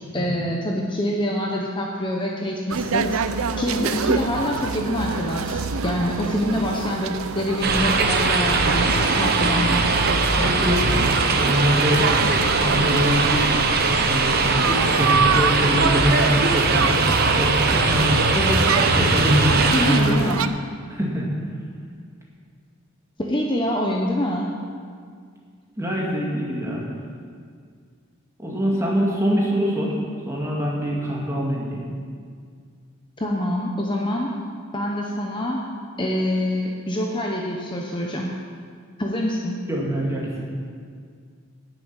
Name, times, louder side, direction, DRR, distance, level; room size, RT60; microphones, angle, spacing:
voice 1, 0.0-3.1 3.6-9.9 18.3-18.9 19.7-20.5 23.2-24.5 33.2-34.3 34.7-35.6 36.0-38.4 39.0-39.6, left 1 dB, 20° left, -1 dB, 0.8 m, -25 dB
sound 1, 2.7-20.5, right 5 dB, 75° right, 0.5 m, -27 dB
sound 2, 7.6-20.0, right 3 dB, 45° right, 0.9 m, -20 dB
voice 2, 10.4-11.0 11.4-13.6 14.0-17.0 17.3-18.3 18.9-20.2 20.9-21.3 25.8-26.8 28.4-30.0 30.3-31.8 39.7-40.4, equal, 15° right, -4 dB, 2.1 m, -24 dB
10.5 x 7.3 x 8.8 m, 2.1 s
head